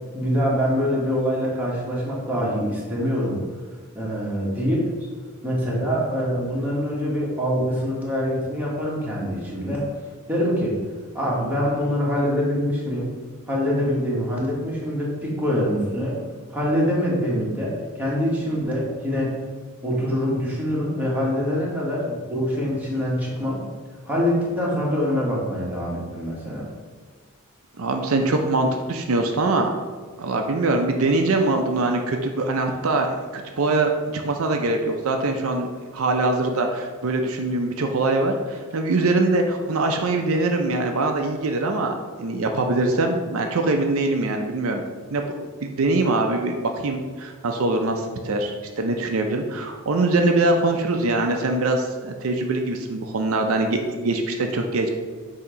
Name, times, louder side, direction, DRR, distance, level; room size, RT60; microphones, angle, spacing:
voice 1, 0.1-3.4 3.9-4.9 5.4-9.9 10.3-10.8 11.1-13.1 13.5-16.2 16.5-19.3 19.8-23.6 24.0-26.6, equal, 10° right, -6 dB, 1.4 m, -24 dB
voice 2, 27.8-29.8 30.2-44.8 45.1-54.9, right 2 dB, 75° right, 4 dB, 0.5 m, -23 dB
7.0 x 2.8 x 5.0 m, 1.5 s
head